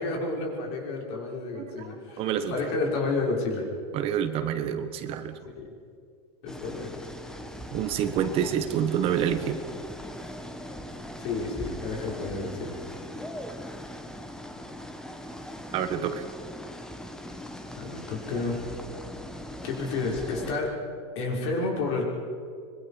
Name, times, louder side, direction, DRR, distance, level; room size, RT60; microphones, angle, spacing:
voice 1, 0.0-3.6 5.5-5.6 6.4-7.0 11.2-12.8 17.8-18.5 19.6-20.7 21.1-22.0, left 3 dB, 60° left, -1 dB, 6.2 m, -30 dB
voice 2, 1.5-2.6 3.9-5.4 7.7-9.6 15.7-16.2, right 9 dB, 40° right, 9 dB, 1.5 m, -28 dB
sound 1, 6.5-20.5, equal, 5° left, 1.5 m, -40 dB
25.0 x 22.5 x 5.3 m, 2.3 s
supercardioid pair, 145°, 15 cm